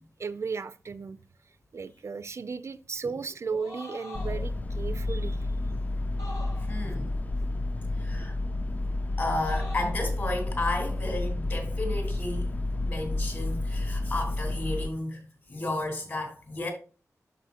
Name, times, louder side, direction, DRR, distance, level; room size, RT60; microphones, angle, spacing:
voice 1, 0.2-1.2 1.7-5.5, right 5 dB, 55° right, 0.4 m, -35 dB
sound 1, 3.4-4.5 6.2-6.9 9.2-10.0, left 2 dB, 75° left, 2.9 m, -43 dB
sound 2, 4.1-14.9, left 2 dB, 30° left, 0.3 m, -30 dB
voice 2, 6.7-7.1 8.0-8.3 9.2-12.5 12.8-16.7, left 2 dB, 45° left, 3.6 m, -33 dB
12.5 x 4.9 x 2.8 m
wide cardioid pair, 105°, 6 cm